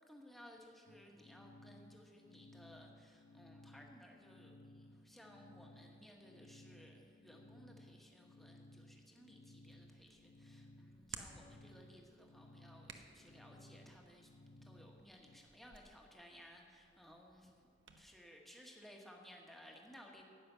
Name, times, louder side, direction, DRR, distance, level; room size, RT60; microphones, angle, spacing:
voice 1, 0.1-14.3 14.6-17.5 17.9-20.2, equal, ahead, 0 dB, 1.3 m, -59 dB
sound 1, 0.9-15.4, left 1 dB, 80° left, 0.9 m, -60 dB
Hands, 9.6-18.1, right 7 dB, 85° right, 0.9 m, -58 dB
10.5 x 9.5 x 6.7 m, 2.3 s
head